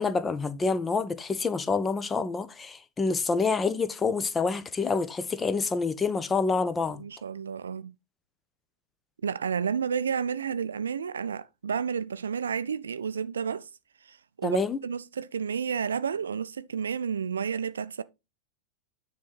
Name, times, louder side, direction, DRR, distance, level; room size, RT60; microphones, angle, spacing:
voice 1, 0.0-7.0 14.4-14.8, left 4 dB, 15° left, 0.7 m, -27 dB
voice 2, 7.0-7.9 9.2-13.7 14.1-14.6 14.8-18.0, right 7 dB, 70° right, 0.4 m, -31 dB
9.5 x 3.7 x 4.4 m
figure-of-eight pair, 90°, 0 cm